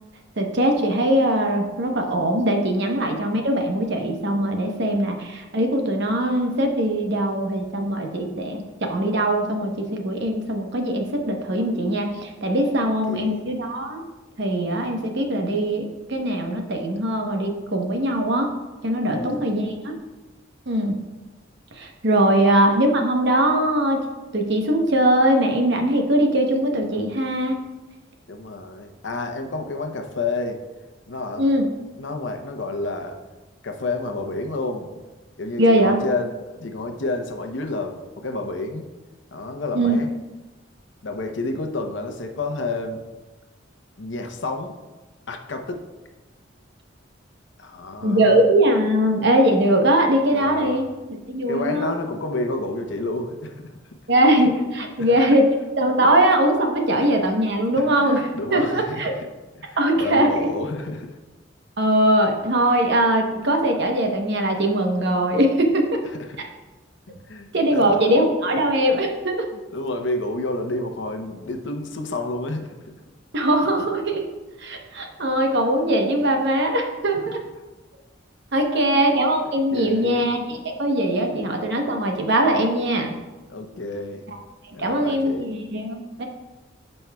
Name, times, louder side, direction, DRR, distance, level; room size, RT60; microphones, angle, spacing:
voice 1, 0.4-14.0 14.4-18.5 18.8-20.0 20.7-21.0 21.7-24.0 24.3-27.6 31.4-31.7 35.6-36.0 39.7-40.0 48.0-51.9 54.1-55.5 55.8-59.1 59.8-60.5 61.8-66.0 67.5-69.5 73.3-74.3 74.6-77.4 78.5-83.1 84.3-84.4 84.7-86.3, right 1 dB, 60° right, 3 dB, 1.0 m, -21 dB
voice 2, 12.8-13.4 19.1-19.4 22.3-22.5 28.3-30.6 31.1-31.4 32.0-33.2 33.6-35.0 35.4-38.8 39.3-40.1 41.0-43.0 44.0-44.7 45.3-45.8 47.6-48.4 50.3-50.8 51.5-53.7 55.0-55.1 57.0-57.1 57.7-59.1 59.6-61.2 66.3-66.5 67.3-68.1 69.5-72.8 78.8-79.0 79.7-80.3 81.3-81.4 83.5-84.3 84.7-85.5, left 2 dB, 65° left, 5 dB, 0.7 m, -30 dB
12.0 x 5.4 x 2.3 m, 1.2 s
head